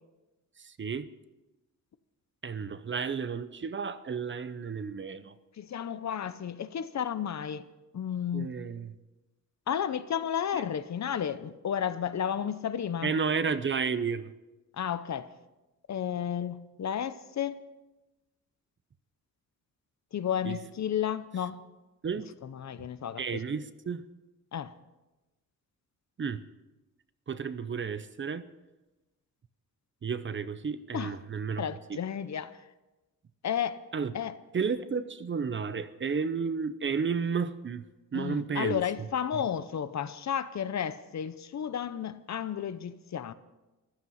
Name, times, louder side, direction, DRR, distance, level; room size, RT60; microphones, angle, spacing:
voice 1, 0.6-1.1 2.4-5.3 8.3-8.9 10.5-10.6 13.0-14.3 20.4-20.6 22.0-22.3 23.2-24.0 26.2-26.4 27.3-28.5 30.0-31.6 31.9-32.0 33.9-34.1 34.5-37.9 38.1-38.8, right 5 dB, 35° right, 13 dB, 0.7 m, -32 dB
voice 2, 5.6-7.6 7.9-8.5 9.7-13.1 14.7-15.3 15.9-17.6 20.1-21.6 22.4-23.4 24.5-24.7 30.9-31.2 31.6-32.6 33.4-33.8 34.1-34.4 38.1-43.3, left 9 dB, 55° left, 13 dB, 0.8 m, -32 dB
14.5 x 12.5 x 5.6 m, 1.1 s
wide cardioid pair, 125°, 32 cm